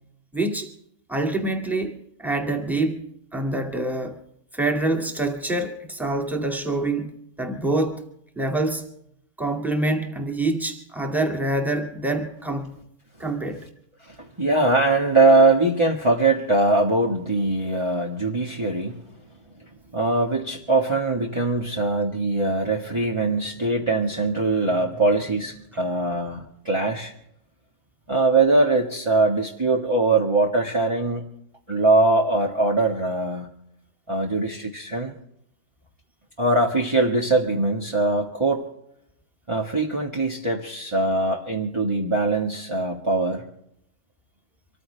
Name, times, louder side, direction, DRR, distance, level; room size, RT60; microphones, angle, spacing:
voice 1, 0.3-0.7 1.1-3.0 3.3-4.2 4.5-8.0 8.4-8.8 9.4-12.8 13.2-13.7, right 2 dB, ahead, 2.2 m, -26 dB
voice 2, 14.0-19.0 19.9-27.1 28.1-31.3 31.7-33.5 34.1-35.1 36.4-38.6 39.5-43.4, right 2 dB, 20° right, 1.6 m, -22 dB
25.5 x 14.5 x 3.4 m
omnidirectional pair, 1.6 m